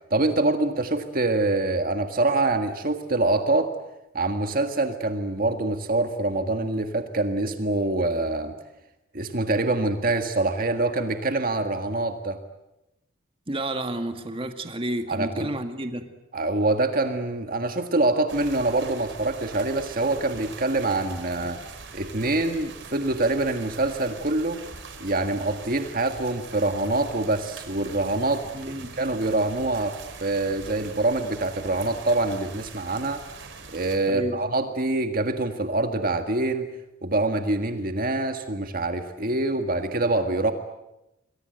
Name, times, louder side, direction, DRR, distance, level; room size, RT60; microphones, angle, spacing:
voice 1, 0.1-3.7 4.1-8.5 9.1-12.4 15.1-15.5 16.3-21.6 21.9-24.6 25.0-33.2 33.7-36.7 37.0-40.5, right 2 dB, 45° right, 1.7 m, -25 dB
voice 2, 13.5-16.1 28.5-28.9 34.1-34.4, right 1 dB, 25° right, 1.9 m, -31 dB
sound 1, 18.3-34.0, right 4 dB, 60° right, 4.4 m, -43 dB
28.0 x 23.5 x 8.0 m
head